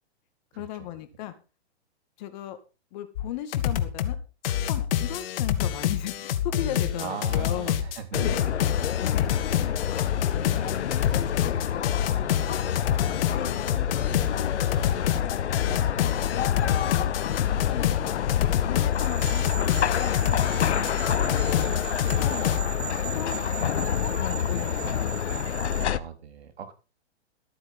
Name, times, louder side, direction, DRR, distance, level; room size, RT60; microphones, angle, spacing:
voice 1, 0.5-1.3 2.2-2.6 2.9-4.2 4.4-7.8 8.2-8.4 9.0-9.3 9.9-12.5 13.0-13.5 14.3-15.1 15.6-16.5 16.9-19.7 20.0-20.4 21.2-21.8 22.1-22.5 22.7-24.9 25.3-25.6, left 12 dB, 40° left, 10 dB, 2.3 m, -37 dB
sound 1, 3.2-3.3 3.5-4.2 4.4-22.6, left 10 dB, 55° left, 1.9 m, -27 dB
voice 2, 7.0-8.5 14.1-14.3 21.2-21.9 24.8-25.0 25.8-26.7, right 7 dB, 70° right, 9 dB, 3.6 m, -39 dB
sound 2, 8.1-26.0, left 9 dB, 90° left, 1.0 m, -28 dB
sound 3, 18.9-25.8, right 14 dB, 20° right, 0.8 m, -39 dB
14.0 x 9.5 x 5.5 m, 0.32 s
hypercardioid pair, 145°, 33 cm